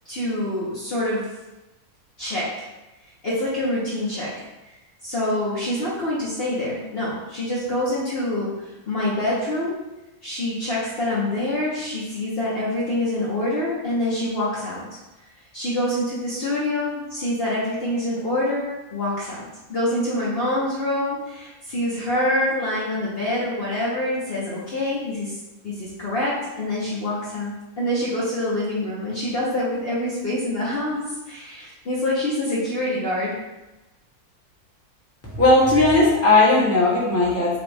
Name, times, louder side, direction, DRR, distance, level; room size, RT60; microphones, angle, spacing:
voice 1, 0.1-1.2 2.2-2.7 3.2-4.3 5.0-9.8 10.2-15.0 15.5-25.3 25.6-33.4, left 1 dB, 45° left, -8 dB, 1.0 m, -26 dB
voice 2, 35.3-37.6, left 2 dB, 10° left, -6 dB, 1.0 m, -17 dB
6.0 x 2.3 x 3.4 m, 1.0 s
omnidirectional pair, 1.6 m